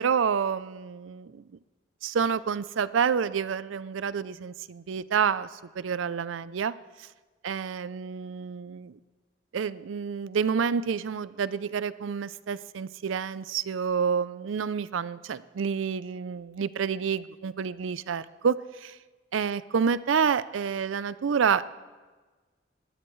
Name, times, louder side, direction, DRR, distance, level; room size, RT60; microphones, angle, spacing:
voice 1, 0.0-1.4 2.0-6.7 7.4-9.0 9.5-19.0 19.3-21.7, right 6 dB, 90° right, 17 dB, 0.4 m, -28 dB
20.5 x 13.0 x 3.2 m, 1.3 s
head